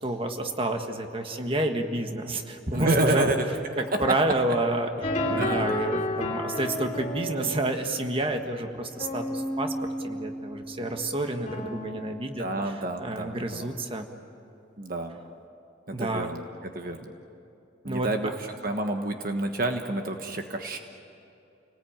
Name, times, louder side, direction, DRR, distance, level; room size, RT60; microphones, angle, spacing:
voice 1, 0.0-3.3 3.8-4.9 5.3-9.7 10.0-14.1 15.9-16.3 17.9-18.3, right 1 dB, 30° right, 5 dB, 1.6 m, -29 dB
voice 2, 2.7-3.4 5.4-5.6 12.4-13.7 14.8-15.2 16.0-16.4 16.7-17.1 17.8-18.3 18.6-20.8, right 2 dB, 55° right, 5 dB, 1.3 m, -28 dB
sound 1, 5.0-13.2, left 1 dB, 35° left, 3.4 m, -33 dB
30.0 x 19.0 x 9.0 m, 2.7 s
head